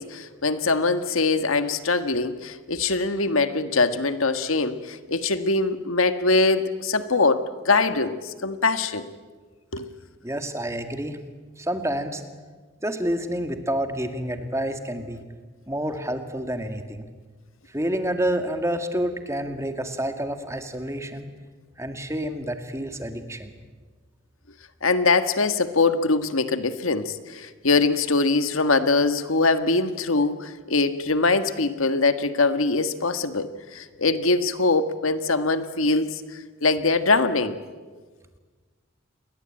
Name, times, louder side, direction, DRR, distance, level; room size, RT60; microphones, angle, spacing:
voice 1, 0.0-9.1 9.7-9.9 24.8-37.6, left 3 dB, 85° left, 10 dB, 1.6 m, -23 dB
voice 2, 10.2-11.2 11.6-12.2 12.8-15.2 15.7-17.1 17.7-21.3 21.8-23.5, right 1 dB, 15° right, 7 dB, 2.1 m, -28 dB
29.0 x 22.0 x 8.9 m, 1.4 s
head